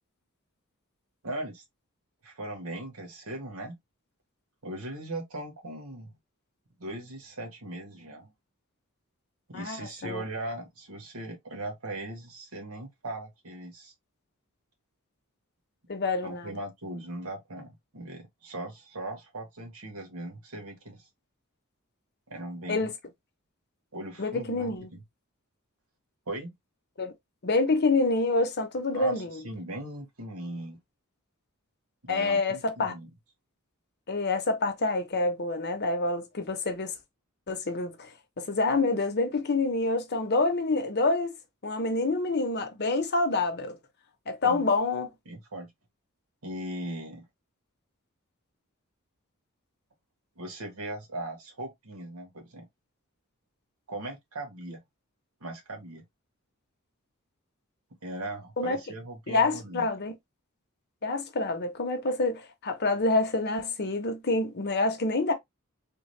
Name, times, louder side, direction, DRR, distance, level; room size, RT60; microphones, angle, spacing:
voice 1, 1.2-1.6 2.2-3.8 4.6-6.1 6.8-8.3 9.5-13.9 16.2-21.1 22.3-22.9 23.9-25.0 26.3-26.5 28.9-30.8 32.0-33.1 44.4-44.6 45.2-45.7 46.4-47.3 50.4-52.6 53.9-54.8 55.4-56.0 58.0-59.9, right 1 dB, 90° right, 1.4 m, -39 dB
voice 2, 9.5-10.2 15.9-16.5 22.7-22.9 24.2-24.9 27.0-27.1 27.4-29.4 32.1-32.9 34.1-36.9 37.5-38.1 38.4-41.3 41.6-43.8 44.3-45.1 58.6-58.8 59.3-60.1 61.0-65.3, left 3 dB, 50° left, 0.9 m, -27 dB
3.7 x 2.3 x 3.2 m
head